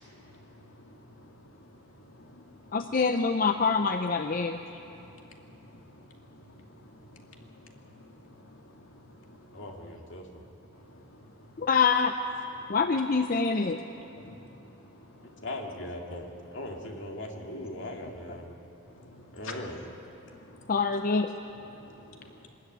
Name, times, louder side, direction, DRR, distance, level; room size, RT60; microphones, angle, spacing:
voice 1, 0.0-3.0 4.2-10.0 10.3-11.7 12.4-13.0 13.5-13.6 14.0-15.5 16.7-16.9 18.3-21.0 21.5-22.5, left 2 dB, 80° left, 1 dB, 2.3 m, -52 dB
voice 2, 2.7-4.6 11.6-12.1 12.7-13.8 20.7-21.3, left 5 dB, 45° left, 6 dB, 0.6 m, -25 dB
voice 3, 9.5-10.3 15.4-18.5 19.3-19.8, left 1 dB, 60° left, 1 dB, 2.3 m, -39 dB
23.5 x 13.0 x 9.3 m, 2.9 s
head